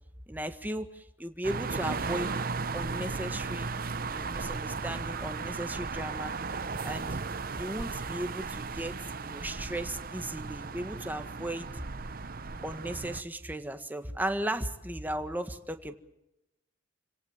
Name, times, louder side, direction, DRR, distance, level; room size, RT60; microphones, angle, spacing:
voice 1, 0.3-2.3 2.7-3.7 4.1-6.3 6.8-7.1 7.6-11.8 12.6-15.9, right 1 dB, 10° right, 7 dB, 1.6 m, -36 dB
sound 1, 1.4-13.2, right 4 dB, 50° right, 0.8 m, -36 dB
29.0 x 18.0 x 7.4 m, 0.90 s
head